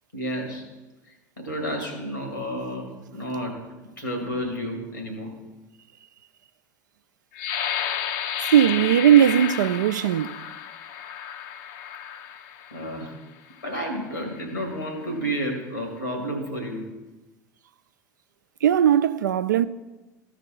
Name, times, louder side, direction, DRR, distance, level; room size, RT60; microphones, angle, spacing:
voice 1, 0.1-0.6 1.4-3.6 4.0-5.3 12.7-13.1 13.6-16.9, equal, 90° left, 2.2 m, -31 dB
sound 1, 7.3-13.0 13.7-13.8 14.3-14.7, left 9 dB, 55° left, 0.6 m, -32 dB
voice 2, 8.5-10.4 18.6-19.7, right 10 dB, 75° right, 0.4 m, -18 dB
14.5 x 4.9 x 3.8 m
figure-of-eight pair, 70°, 10 cm